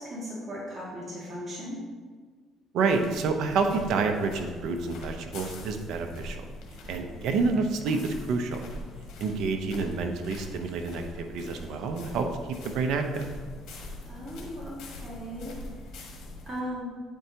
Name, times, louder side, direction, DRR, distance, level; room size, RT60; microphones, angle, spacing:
voice 1, 0.0-1.8 6.8-7.3 9.2-9.4 14.1-15.5 16.5-16.9, equal, 25° right, -6 dB, 1.8 m, -38 dB
voice 2, 2.7-6.4 6.9-8.7 9.2-12.3 12.6-13.3, right 4 dB, 70° right, 5 dB, 0.7 m, -28 dB
sound 1, 2.8-16.6, left 2 dB, 70° left, 1.4 m, -43 dB
8.8 x 4.5 x 2.8 m, 1.5 s
cardioid pair, 95°, 0 cm